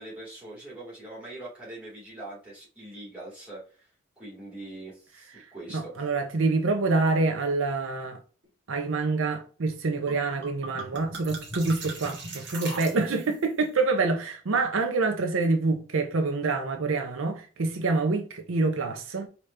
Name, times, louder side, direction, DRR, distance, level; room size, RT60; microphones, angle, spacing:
voice 1, 0.0-3.9 4.2-6.0, right 2 dB, 5° right, 2.4 m, -42 dB
voice 2, 5.7-8.2 8.7-19.3, right 3 dB, 70° right, 0.6 m, -26 dB
sound 1, 10.1-10.2 10.4-13.5, right 3 dB, 55° right, 1.3 m, -39 dB
4.9 x 2.9 x 3.3 m
head